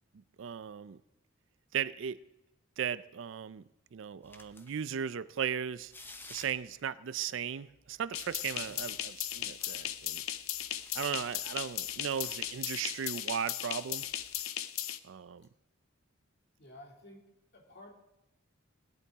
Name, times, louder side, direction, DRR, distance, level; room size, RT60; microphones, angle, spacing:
voice 1, 0.4-1.0 1.7-2.2 2.8-3.6 3.9-5.9 6.3-10.2 10.9-14.1 15.0-15.5, right 8 dB, 65° right, 0.4 m, -36 dB
sound 1, 4.2-5.0 5.7-6.8 7.7-13.1 13.9-14.4, left 2 dB, 10° left, 0.7 m, -56 dB
sound 2, 8.1-15.0, left 12 dB, 85° left, 0.6 m, -37 dB
voice 2, 8.5-8.9 16.6-17.3 17.5-17.9, left 1 dB, 50° left, 2.5 m, -53 dB
17.0 x 11.5 x 3.6 m
head